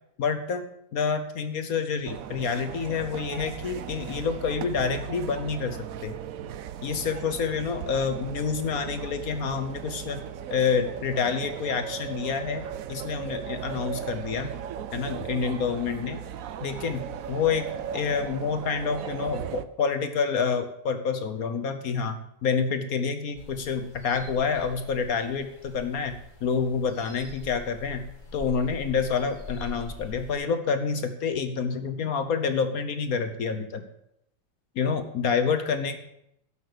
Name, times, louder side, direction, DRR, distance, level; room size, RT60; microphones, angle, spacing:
voice 1, 0.2-0.6 0.9-6.1 6.8-10.2 10.5-12.6 12.9-14.5 14.9-16.2 16.6-28.1 28.3-33.8 34.7-36.0, left 5 dB, 55° left, 9 dB, 1.2 m, -28 dB
metro subway Taiwan, 2.1-19.7, right 9 dB, 70° right, 0.8 m, -37 dB
sound 1, 23.4-30.3, left 2 dB, 25° left, 1.9 m, -44 dB
11.5 x 8.1 x 6.7 m, 0.80 s
omnidirectional pair, 2.0 m